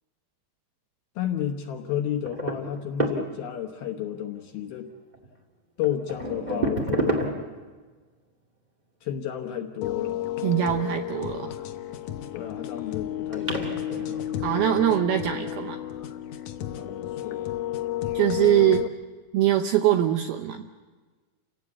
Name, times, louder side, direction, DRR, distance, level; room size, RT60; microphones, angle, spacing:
voice 1, 1.2-4.9 5.8-7.4 9.0-10.2 12.3-13.8 16.7-17.5, left 10 dB, 70° left, 4 dB, 2.4 m, -32 dB
sound 1, 2.2-3.7 5.1-5.3 5.8-7.7 11.6-12.2 12.8-12.9 13.3-15.3 16.2-16.6 17.4-17.5 17.9-18.0, right 2 dB, 25° right, 1.0 m, -30 dB
sound 2, 9.8-18.9, left 12 dB, 85° left, 1.8 m, -32 dB
voice 2, 10.4-11.5 14.4-15.8 18.1-18.9 19.3-20.7, right 11 dB, 80° right, 6 dB, 2.3 m, -22 dB
29.5 x 17.0 x 8.4 m, 1.3 s
omnidirectional pair, 5.4 m